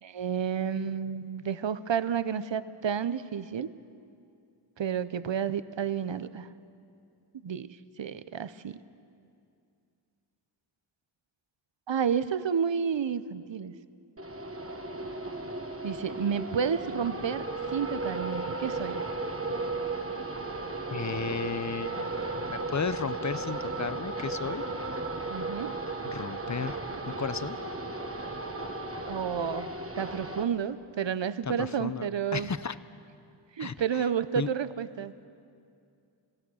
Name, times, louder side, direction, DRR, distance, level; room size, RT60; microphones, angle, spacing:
voice 1, 0.0-3.7 4.8-6.5 7.4-7.7 8.0-8.8 11.9-13.7 15.8-17.4 17.7-19.0 25.3-25.8 29.1-29.7 30.0-32.5 33.6-35.2, right 7 dB, 65° right, 15 dB, 0.7 m, -30 dB
sound 1, 14.2-30.4, right 2 dB, 30° right, 1.3 m, -35 dB
voice 2, 20.9-24.6 26.0-27.6 31.5-32.8 33.6-34.1 34.4-34.5, left 5 dB, 35° left, 15 dB, 0.7 m, -34 dB
26.0 x 16.0 x 6.3 m, 2.5 s
wide cardioid pair, 40°, 48 cm